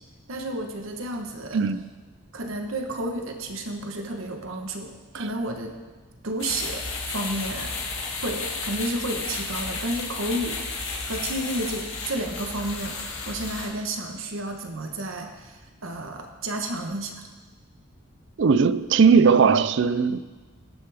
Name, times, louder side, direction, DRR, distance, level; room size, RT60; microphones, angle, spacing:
voice 1, 0.3-1.6 2.3-5.7 6.2-7.7 8.2-10.6 11.0-17.2, right 1 dB, 75° right, 1.1 m, -31 dB
sound 1, 6.4-13.7, left 4 dB, 70° left, 2.0 m, -33 dB
voice 2, 18.4-20.2, right 5 dB, 60° right, 0.4 m, -18 dB
19.0 x 6.8 x 3.5 m
head